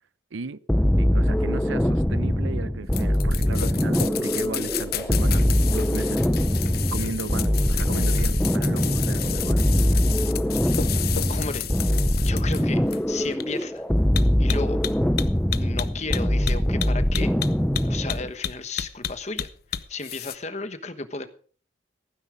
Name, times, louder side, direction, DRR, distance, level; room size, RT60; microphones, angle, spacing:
sound 1, 0.7-18.3, equal, 5° left, 0.5 m, -23 dB
voice 1, 1.0-6.3 6.9-9.6, right 3 dB, 85° right, 0.7 m, -36 dB
sound 2, 2.9-13.3, left 1 dB, 90° left, 2.8 m, -43 dB
sound 3, 2.9-20.3, left 10 dB, 50° left, 0.7 m, -32 dB
voice 2, 11.3-11.7 12.2-13.8 14.4-14.8 15.4-17.3 17.8-21.3, left 3 dB, 35° left, 1.2 m, -34 dB
15.5 x 9.7 x 5.1 m
head